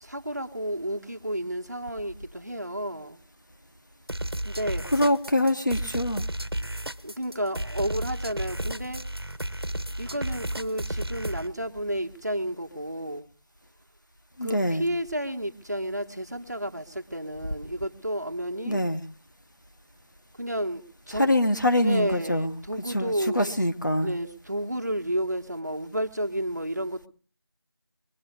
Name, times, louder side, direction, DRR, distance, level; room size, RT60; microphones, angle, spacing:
voice 1, 0.0-3.2 4.4-4.9 7.0-9.1 10.0-13.3 14.4-18.8 20.4-21.3 21.8-23.5 24.0-27.1, right 1 dB, 45° right, 1.3 m, -31 dB
sound 1, 4.1-11.5, right 1 dB, 80° right, 1.2 m, -32 dB
voice 2, 4.9-6.2 14.4-14.9 18.6-19.0 21.2-22.5 22.9-24.1, left 1 dB, 50° left, 1.1 m, -24 dB
22.0 x 7.5 x 6.9 m
figure-of-eight pair, 180°, 13 cm